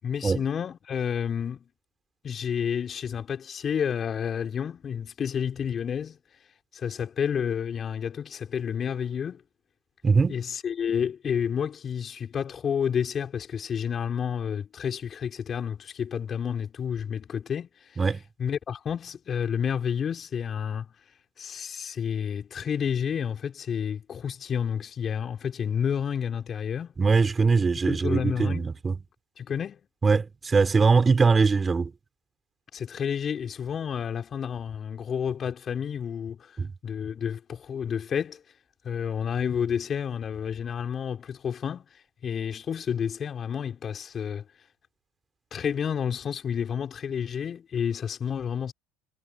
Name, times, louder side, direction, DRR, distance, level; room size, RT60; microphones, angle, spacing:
voice 1, 0.0-1.7 2.2-6.2 6.7-9.4 10.3-18.0 18.4-20.9 21.4-26.9 27.9-28.7 29.4-29.8 32.7-36.6 36.8-38.4 38.8-44.4 45.5-48.7, left 7 dB, 40° left, 5.2 m, -30 dB
voice 2, 10.0-10.4 18.0-18.2 27.0-29.0 30.0-31.9 36.6-36.7, right 4 dB, 25° right, 5.4 m, -22 dB
hypercardioid pair, 75°, 0 cm